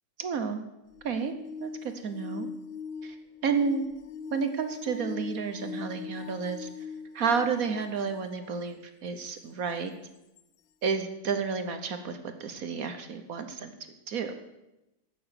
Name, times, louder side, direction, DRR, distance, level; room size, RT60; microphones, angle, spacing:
voice 1, 0.2-0.6 1.0-2.5 3.0-3.2 3.4-3.8 4.3-6.7 7.1-9.9 10.8-13.7 14.1-14.3, right 5 dB, 60° right, 8 dB, 1.3 m, -31 dB
sound 1, 0.9-8.6 9.3-9.4 10.4-10.5, left 6 dB, 85° left, 0.5 m, -42 dB
13.0 x 8.9 x 6.7 m, 0.94 s
omnidirectional pair, 1.8 m